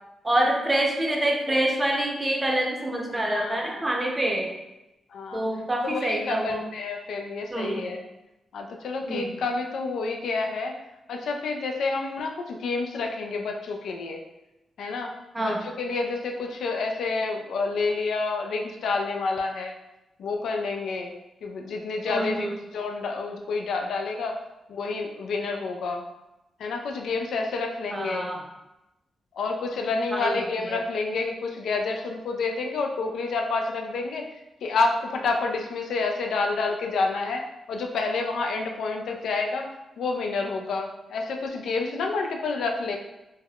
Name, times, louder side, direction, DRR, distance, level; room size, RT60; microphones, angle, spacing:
voice 1, 0.2-4.5 5.3-6.6 7.5-7.9 9.0-9.4 15.3-15.6 22.1-22.6 27.9-28.4 30.1-30.8, right 1 dB, 20° right, 0 dB, 0.6 m, -26 dB
voice 2, 3.1-3.9 5.1-5.4 5.8-8.0 8.5-10.8 11.1-14.2 14.8-19.7 20.2-21.1 21.4-24.4 24.7-26.0 26.6-28.3 29.3-34.3 34.6-39.7 40.0-43.0, left 3 dB, 80° left, 3 dB, 0.3 m, -29 dB
3.3 x 2.1 x 2.3 m, 0.96 s
cardioid pair, 80°, 0 cm